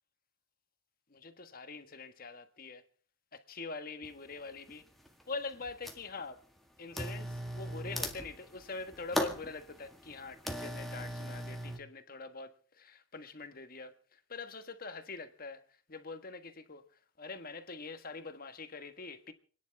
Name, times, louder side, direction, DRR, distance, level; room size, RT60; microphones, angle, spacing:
voice 1, 1.1-2.8 3.3-4.8 5.3-6.4 6.8-15.6 15.9-16.8 17.2-19.3, left 3 dB, 45° left, 1.5 m, -44 dB
sound 1, 4.0-4.1 4.7-5.2 5.5-6.2 6.9-11.8, equal, ahead, 1.8 m, -38 dB
29.5 x 10.5 x 3.5 m
head